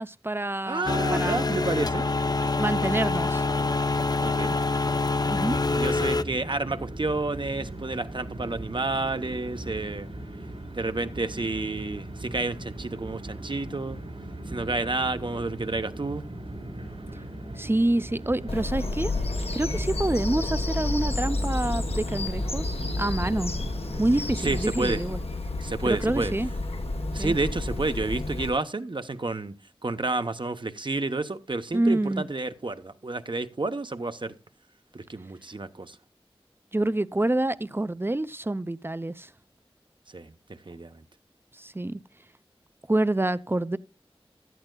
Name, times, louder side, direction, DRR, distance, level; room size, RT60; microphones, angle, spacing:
voice 1, 0.0-1.5 2.5-3.4 5.3-5.6 17.6-19.1 19.5-23.5 24.0-25.2 25.8-26.5 27.2-27.4 31.7-32.3 36.7-39.3 41.5-42.0 42.9-43.8, right 1 dB, 25° right, 0.5 m, -27 dB
voice 2, 0.7-2.0 4.2-4.6 5.7-10.1 10.7-14.0 14.5-16.3 19.6-19.8 24.4-25.0 25.6-26.3 27.1-29.5 29.8-34.3 34.9-36.0 40.1-40.3 40.7-41.0, right 3 dB, 55° right, 0.8 m, -30 dB
sound 1, 0.9-6.2, left 3 dB, 40° left, 0.5 m, -25 dB
sound 2, 5.3-24.6, right 1 dB, 85° right, 4.1 m, -39 dB
Bird vocalization bird call bird song, 18.5-28.5, left 2 dB, 85° left, 1.1 m, -30 dB
15.5 x 11.5 x 2.2 m
wide cardioid pair, 55°, 10 cm